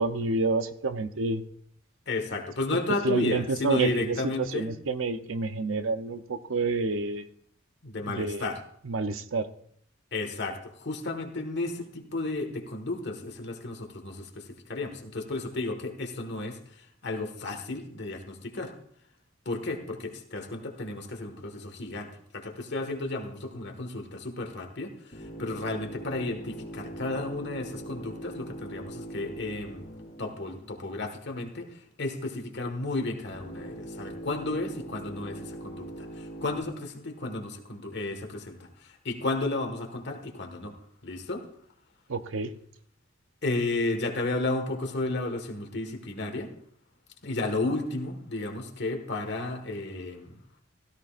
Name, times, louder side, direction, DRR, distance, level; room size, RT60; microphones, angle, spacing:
voice 1, 0.0-1.4 3.0-7.3 8.1-8.5 8.8-9.5 42.1-42.5, right 3 dB, 80° right, 10 dB, 0.7 m, -29 dB
voice 2, 2.1-4.7 7.8-8.6 10.1-18.7 19.4-29.9 30.2-40.7 41.0-41.4 43.4-46.5 47.2-50.4, left 2 dB, 60° left, 5 dB, 1.6 m, -33 dB
sound 1, 25.1-31.4 33.3-36.6, right 1 dB, 40° left, 3.6 m, -42 dB
16.5 x 13.5 x 2.5 m, 0.66 s
head